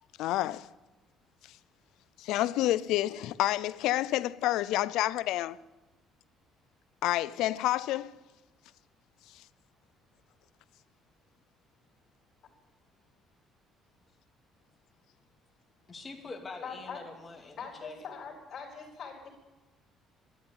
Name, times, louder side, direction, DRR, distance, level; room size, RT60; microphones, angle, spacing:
voice 1, 0.2-0.7 2.2-5.6 7.0-8.2, left 15 dB, 85° left, 0.5 m, -29 dB
voice 2, 15.9-18.0, left 3 dB, 20° left, 2.4 m, -45 dB
voice 3, 16.6-17.0 17.6-19.3, left 6 dB, 45° left, 4.1 m, -42 dB
12.5 x 11.5 x 8.8 m
cardioid pair, 150°, 0 cm